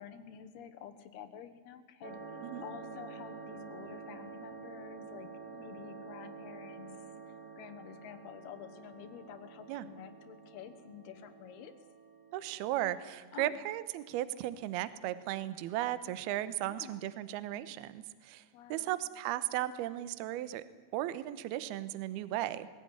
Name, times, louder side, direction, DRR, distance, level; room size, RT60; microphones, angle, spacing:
voice 1, 0.0-7.0 7.6-11.8 13.3-13.6 16.6-17.1 18.5-19.0, left 9 dB, 70° left, 8 dB, 2.9 m, -50 dB
sound 1, 2.0-12.8, right 4 dB, 55° right, 0.8 m, -48 dB
voice 2, 12.3-18.4 18.7-20.6 20.9-22.7, right 14 dB, 75° right, 15 dB, 2.6 m, -36 dB
21.5 x 16.5 x 9.7 m, 1.5 s
omnidirectional pair, 5.1 m